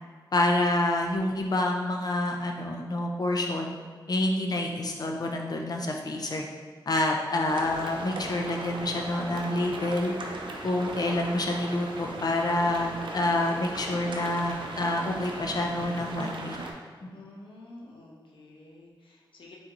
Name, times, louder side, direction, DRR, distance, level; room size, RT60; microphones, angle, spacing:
voice 1, 0.3-3.7 4.1-6.4 6.9-10.1 10.6-16.6 17.0-17.1, left 1 dB, 50° left, 1 dB, 0.6 m, -28 dB
sound 1, 7.5-16.7, right 2 dB, 80° right, 0.5 m, -38 dB
voice 2, 17.1-19.6, left 2 dB, 85° left, -2 dB, 0.7 m, -49 dB
4.0 x 3.8 x 3.0 m, 1.5 s
wide cardioid pair, 85°, 8 cm